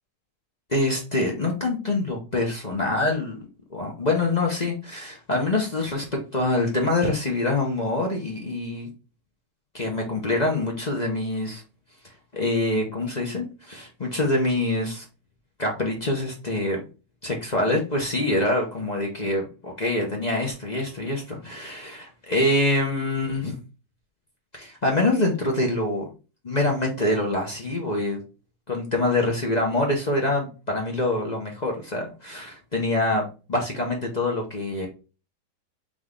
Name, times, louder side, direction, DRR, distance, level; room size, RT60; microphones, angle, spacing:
voice 1, 0.7-3.4 3.7-6.1 6.3-8.9 9.7-11.6 12.0-15.0 15.6-16.8 17.2-23.6 24.5-26.1 26.4-28.2 28.7-34.9, left 2 dB, 35° left, 0 dB, 0.8 m, -25 dB
3.7 x 3.4 x 3.7 m, 0.32 s
omnidirectional pair, 1.9 m